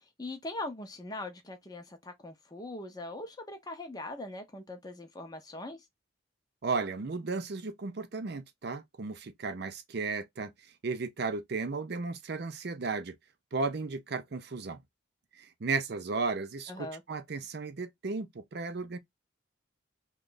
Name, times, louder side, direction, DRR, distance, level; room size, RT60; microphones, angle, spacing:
voice 1, 0.2-5.8 16.7-17.0, left 2 dB, 20° left, 0.6 m, -41 dB
voice 2, 6.6-10.5 10.8-13.2 13.5-14.8 15.3-19.0, right 4 dB, 50° right, 0.5 m, -34 dB
3.1 x 2.3 x 3.8 m
head